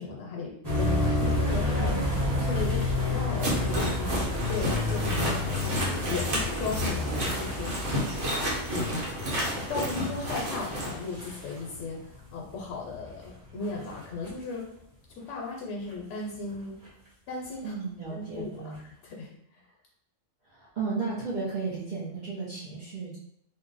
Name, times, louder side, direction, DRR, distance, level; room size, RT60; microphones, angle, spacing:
voice 1, 0.0-2.0 2.3-4.1 4.5-5.8 6.1-7.7 8.7-9.0 9.6-14.7 15.2-16.8 17.3-17.7 18.1-19.6, left 4 dB, 75° left, -1 dB, 0.9 m, -36 dB
sound 1, 0.6-14.4 15.2-15.3 15.9-16.5 16.8-16.9 18.7-18.8, left 2 dB, 20° right, 1.0 m, -30 dB
voice 2, 1.8-2.7 17.6-18.8 20.5-23.2, right 4 dB, 45° right, -8 dB, 0.7 m, -34 dB
sound 2, 3.4-10.9, equal, 80° right, 1.2 m, -31 dB
2.6 x 2.0 x 3.8 m, 0.74 s
omnidirectional pair, 1.2 m